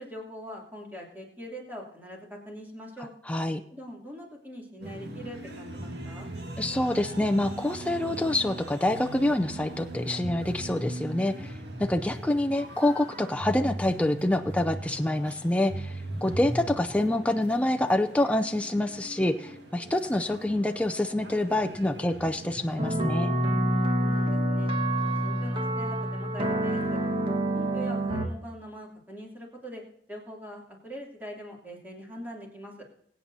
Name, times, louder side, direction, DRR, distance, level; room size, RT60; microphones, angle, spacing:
voice 1, 0.0-3.1 3.7-6.3 23.9-24.7 25.0-27.0 27.5-29.8 30.1-32.9, equal, 10° right, -2 dB, 2.8 m, -42 dB
voice 2, 3.3-3.6 6.6-11.5 11.8-23.3, left 1 dB, 10° left, 6 dB, 0.4 m, -26 dB
sound 1, 4.8-22.9, right 1 dB, 65° right, 1.7 m, -39 dB
sound 2, 22.8-28.3, right 1 dB, 30° right, 1.5 m, -27 dB
22.5 x 8.7 x 2.7 m, 0.72 s
head